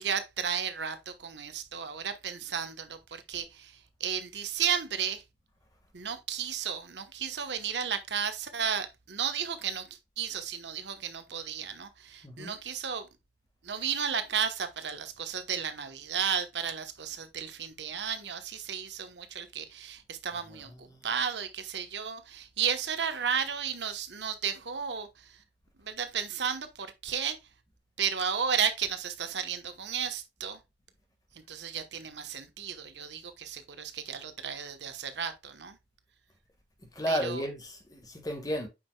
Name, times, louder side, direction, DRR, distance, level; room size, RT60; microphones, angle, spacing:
voice 1, 0.0-5.2 5.9-13.1 13.6-25.4 25.8-27.4 28.0-30.6 31.3-35.8 37.1-37.4, right 7 dB, 80° right, 1.1 m, -33 dB
voice 2, 12.2-12.6 20.3-21.2 36.9-38.7, equal, 20° left, 1.6 m, -34 dB
8.5 x 5.6 x 2.2 m
head